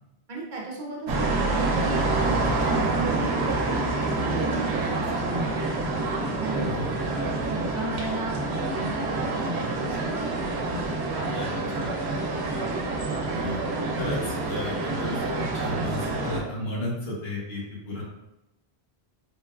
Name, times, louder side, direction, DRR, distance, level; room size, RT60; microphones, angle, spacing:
voice 1, 0.3-3.3 4.1-5.7 6.3-6.8 7.5-10.0, right 1 dB, 55° right, -3 dB, 0.6 m, -35 dB
sound 1, 1.1-16.4, right 2 dB, 85° right, 0.8 m, -27 dB
voice 2, 12.2-12.6 13.3-13.6 13.9-18.0, left 1 dB, 70° left, -5 dB, 1.2 m, -33 dB
3.8 x 2.2 x 2.3 m, 0.92 s
omnidirectional pair, 1.1 m